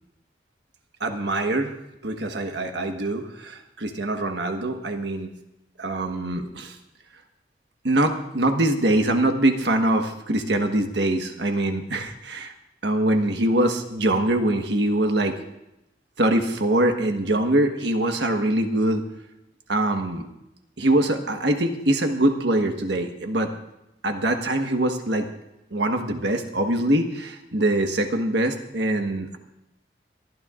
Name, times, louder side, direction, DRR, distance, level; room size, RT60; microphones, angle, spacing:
voice 1, 1.0-1.8 2.0-5.3 5.8-6.8 7.8-12.5 12.8-15.4 16.2-19.0 19.7-20.3 20.8-23.5 24.0-25.3 25.7-29.4, right 1 dB, 75° right, 5 dB, 1.4 m, -23 dB
24.5 x 12.5 x 2.5 m, 0.89 s
head